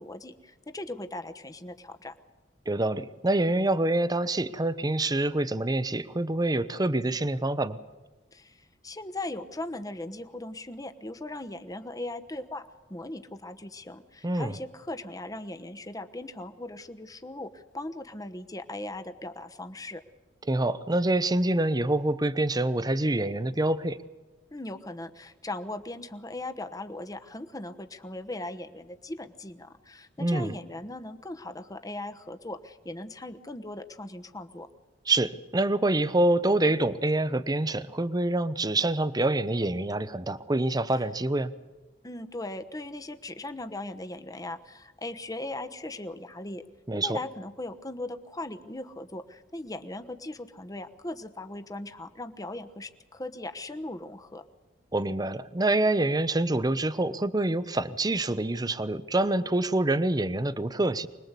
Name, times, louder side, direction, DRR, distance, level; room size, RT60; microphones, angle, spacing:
voice 1, 0.0-2.1 8.3-20.0 24.5-34.7 42.0-46.7 46.9-54.4, left 2 dB, 20° left, 8 dB, 1.1 m, -39 dB
voice 2, 2.7-7.8 14.2-14.6 20.5-24.0 30.2-30.5 35.1-41.5 46.9-47.2 54.9-61.1, right 2 dB, 20° right, 15 dB, 0.8 m, -26 dB
25.0 x 20.5 x 8.3 m, 1.2 s
head